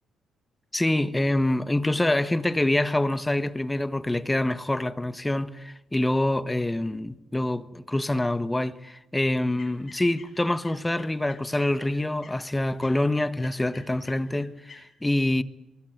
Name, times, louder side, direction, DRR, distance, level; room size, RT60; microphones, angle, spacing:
voice 1, 0.7-15.4, left 1 dB, 10° left, 1.3 m, -26 dB
sound 1, 9.4-14.8, left 5 dB, 40° left, 7.6 m, -53 dB
24.5 x 20.0 x 9.2 m
cardioid pair, 90°, 0 cm